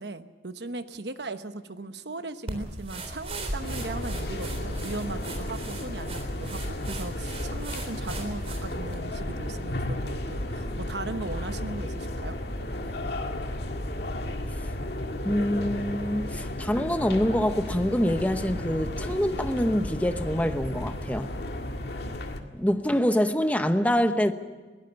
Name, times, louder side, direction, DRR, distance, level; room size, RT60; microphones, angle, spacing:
voice 1, 0.0-12.4, right 2 dB, 70° right, 10 dB, 1.1 m, -38 dB
sound 1, 2.5-9.0, right 1 dB, 35° right, 3.7 m, -38 dB
sound 2, 3.6-22.4, left 1 dB, 65° left, 1.9 m, -33 dB
voice 2, 15.2-21.3 22.5-24.3, equal, 10° left, 8 dB, 1.0 m, -25 dB
22.0 x 17.0 x 7.0 m, 1.4 s
head